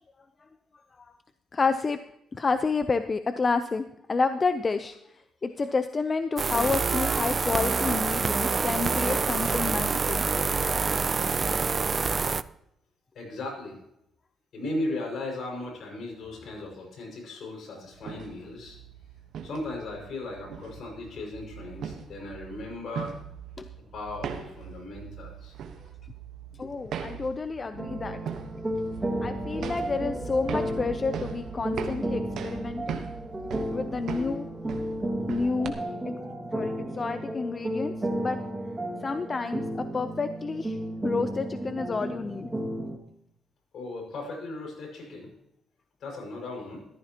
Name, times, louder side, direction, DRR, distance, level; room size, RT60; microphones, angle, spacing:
voice 1, 1.5-2.0 2.4-4.9 5.4-10.2 10.7-10.8 23.6-23.7 26.6-28.2 29.2-33.0 33.7-34.5 35.3-35.7 36.1-36.2 36.5-38.4 39.0-40.8 41.0-42.5, left 4 dB, 35° left, 10 dB, 0.6 m, -29 dB
sound 1, 6.4-12.4, right 5 dB, 35° right, 0.4 m, -26 dB
voice 2, 13.1-13.8 14.5-18.8 19.4-23.1 23.9-25.5 43.7-45.3 46.0-46.9, left 2 dB, 65° left, 1 dB, 5.7 m, -37 dB
sound 2, 17.9-35.7, right 7 dB, 70° right, 1.2 m, -40 dB
sound 3, 27.8-43.0, right 1 dB, 15° right, 2.1 m, -33 dB
14.0 x 14.0 x 3.0 m, 0.79 s
cardioid pair, 90°, 0 cm